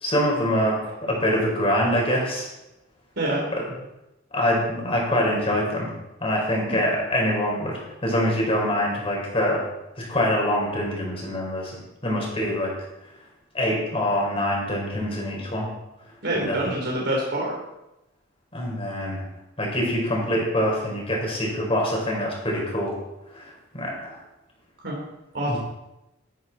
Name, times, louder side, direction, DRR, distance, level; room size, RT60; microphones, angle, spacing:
voice 1, 0.0-0.8 1.0-2.5 4.3-5.9 6.2-9.6 10.1-11.8 12.0-12.7 13.5-15.7 16.3-16.7 18.5-19.2 19.6-22.9 23.3-23.4 23.7-24.2 25.5-25.6, equal, 30° left, -2 dB, 4.5 m, -24 dB
voice 2, 16.2-17.6 24.8-24.9 25.3-25.6, right 1 dB, 60° right, -3 dB, 3.7 m, -26 dB
12.5 x 12.5 x 4.2 m, 0.94 s
head